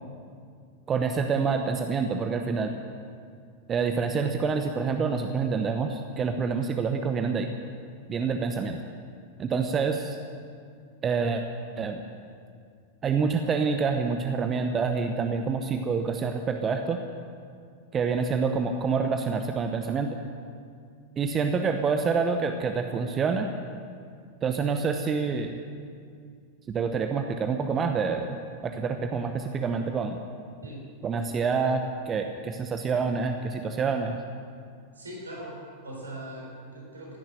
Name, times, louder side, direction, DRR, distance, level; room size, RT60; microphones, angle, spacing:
voice 1, 0.9-2.7 3.7-7.5 8.1-8.8 9.4-10.2 11.0-11.4 11.8-12.0 13.0-17.0 17.9-20.2 21.2-23.5 24.4-25.6 26.7-28.4 28.6-30.2 31.0-34.2, right 5 dB, 25° right, 6 dB, 0.9 m, -27 dB
voice 2, 34.9-37.2, right 1 dB, 75° right, -2 dB, 3.8 m, -40 dB
16.5 x 11.0 x 7.8 m, 2.3 s
figure-of-eight pair, 90°, 0 cm